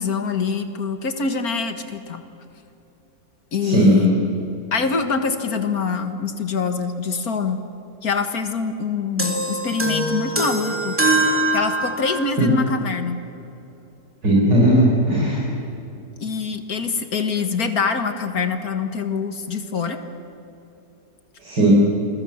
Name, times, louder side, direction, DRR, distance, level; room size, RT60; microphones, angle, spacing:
voice 1, 0.0-2.2 3.5-4.1 4.7-7.6 8.0-11.0 11.5-13.2 16.2-20.0, left 5 dB, 55° left, 8 dB, 2.0 m, -24 dB
voice 2, 3.6-4.2 12.4-12.5 14.2-15.5 21.4-21.7, right 1 dB, 70° right, -4 dB, 5.3 m, -17 dB
sound 1, 9.2-12.4, right 1 dB, 5° right, 2.7 m, -23 dB
28.5 x 21.5 x 7.3 m, 2.9 s
omnidirectional pair, 1.9 m